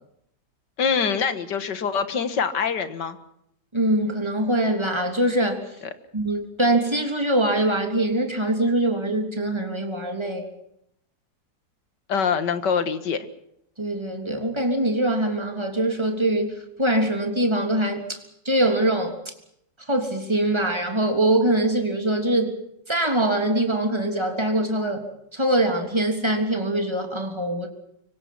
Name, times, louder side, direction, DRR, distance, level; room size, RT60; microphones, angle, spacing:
voice 1, 0.8-3.2 12.1-13.2, left 6 dB, 70° left, 2.2 m, -24 dB
voice 2, 3.7-5.6 6.1-10.5 13.8-19.2 19.9-22.6 22.9-25.1 25.3-27.7, right 1 dB, 15° right, 3.3 m, -23 dB
25.0 x 24.5 x 6.0 m
omnidirectional pair, 1.9 m